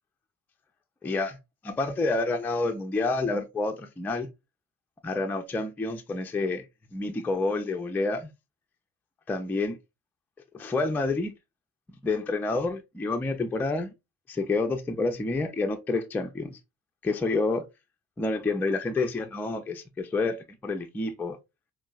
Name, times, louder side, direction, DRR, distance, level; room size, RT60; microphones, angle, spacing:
voice 1, 1.0-1.4 1.6-4.3 5.0-6.6 6.9-8.3 9.3-9.8 10.5-11.3 12.0-13.9 14.3-16.6 17.0-17.7 18.2-21.4, left 3 dB, 5° left, 0.3 m, -28 dB
4.5 x 2.3 x 2.3 m
figure-of-eight pair, 40°, 43 cm